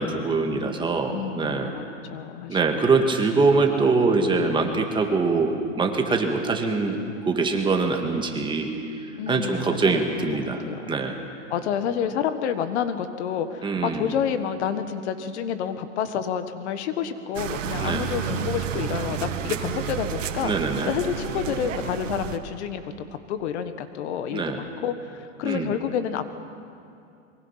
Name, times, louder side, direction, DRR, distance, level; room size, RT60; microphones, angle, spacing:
voice 1, 0.0-1.7 2.5-8.7 9.3-11.2 13.6-14.1 17.8-18.0 20.4-20.9 24.3-24.6 25.4-25.7, right 4 dB, 15° right, 3 dB, 1.8 m, -23 dB
voice 2, 1.1-1.8 2.1-2.7 9.2-10.4 10.6-10.8 11.5-20.5 20.9-26.2, left 8 dB, 60° left, 10 dB, 1.6 m, -29 dB
sound 1, 17.4-22.4, right 8 dB, 85° right, 1.7 m, -31 dB
26.5 x 23.0 x 5.8 m, 2.6 s
supercardioid pair, 140°, 37 cm